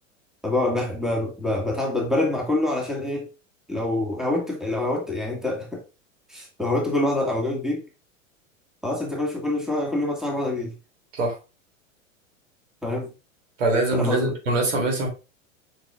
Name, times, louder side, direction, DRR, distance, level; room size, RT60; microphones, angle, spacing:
voice 1, 0.4-3.3 3.7-5.8 6.3-7.8 8.8-10.7 12.8-13.1 13.9-14.3, left 2 dB, ahead, 1.9 m, -26 dB
voice 2, 13.6-15.1, right 2 dB, 70° right, 2.9 m, -23 dB
6.7 x 5.7 x 2.4 m
figure-of-eight pair, 95°, 40 cm